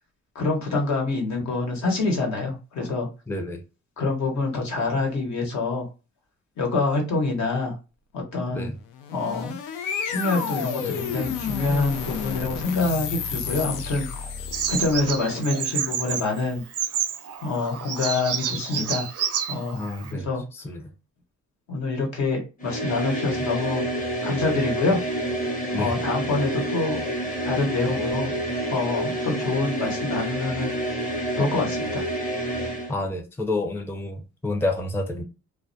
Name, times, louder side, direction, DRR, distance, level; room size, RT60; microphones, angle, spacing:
voice 1, 0.3-3.1 4.0-5.9 6.6-7.7 8.1-8.7 9.1-9.6 10.0-14.1 14.7-16.6 17.4-19.1 19.5-19.9 20.1-20.4 21.7-23.8 24.2-25.0 25.7-27.0 27.4-28.3 28.7-30.7 31.4-32.0, left 3 dB, 65° left, 1.0 m, -26 dB
voice 2, 3.3-3.6 8.5-8.8 19.7-20.3 20.5-20.8 25.7-25.9 32.9-35.2, left 2 dB, 10° left, 0.5 m, -29 dB
sound 1, 8.9-15.2, left 7 dB, 80° left, 0.5 m, -31 dB
Bird vocalization bird call bird song, 14.5-20.1, right 8 dB, 55° right, 0.5 m, -29 dB
sound 2, 22.6-32.9, right 1 dB, 25° left, 0.8 m, -28 dB
2.2 x 2.1 x 2.6 m
cardioid pair, 90°, 30 cm